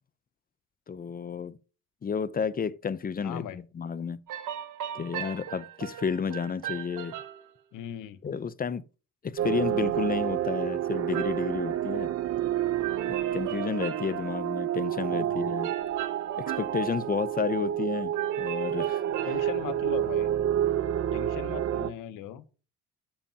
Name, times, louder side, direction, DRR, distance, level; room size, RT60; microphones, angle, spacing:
voice 1, 0.9-1.6 2.0-4.2 4.9-7.1 8.2-8.8 9.2-12.1 13.3-15.7 16.4-19.0, left 6 dB, 25° left, 0.5 m, -31 dB
voice 2, 3.2-3.6 7.7-8.2 15.1-15.5 19.2-20.3 21.1-22.4, left 10 dB, 70° left, 0.9 m, -38 dB
sound 1, 4.3-7.5 11.1-12.5 12.8-14.5 15.6-17.8 18.1-19.8, right 11 dB, 65° right, 1.2 m, -38 dB
sound 2, 9.4-21.9, right 11 dB, 50° right, 0.8 m, -29 dB
8.6 x 7.2 x 2.8 m
supercardioid pair, 70°, 33 cm